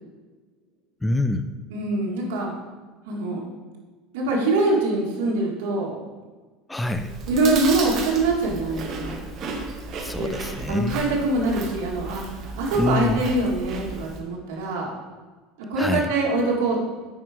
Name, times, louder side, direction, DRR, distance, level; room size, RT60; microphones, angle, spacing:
voice 1, 1.0-1.5 6.7-7.1 10.0-11.1 12.7-13.3 15.8-16.1, left 2 dB, 5° left, 9 dB, 0.4 m, -26 dB
voice 2, 1.7-2.5 3.1-3.4 4.1-5.9 7.3-9.2 10.2-10.3 10.7-14.9 15.7-16.8, right 2 dB, 85° right, -2 dB, 1.8 m, -24 dB
Chewing mastication, 6.9-14.2, right 3 dB, 40° right, 1.3 m, -34 dB
8.3 x 4.5 x 5.1 m, 1.3 s
supercardioid pair, 145°, 0 cm